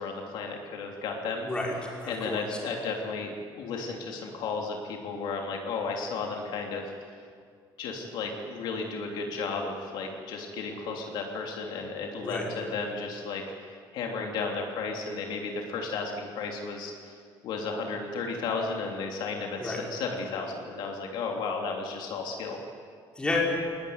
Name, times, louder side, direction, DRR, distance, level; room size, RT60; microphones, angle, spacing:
voice 1, 0.0-1.5 2.0-6.9 7.8-17.1 17.4-22.6, left 4 dB, 70° left, 1 dB, 3.3 m, -34 dB
voice 2, 1.4-2.4 12.2-12.5 19.6-19.8 23.2-23.4, left 2 dB, 10° left, -2 dB, 5.2 m, -31 dB
21.5 x 20.5 x 9.7 m, 2.1 s
cardioid pair, 170°, 8 cm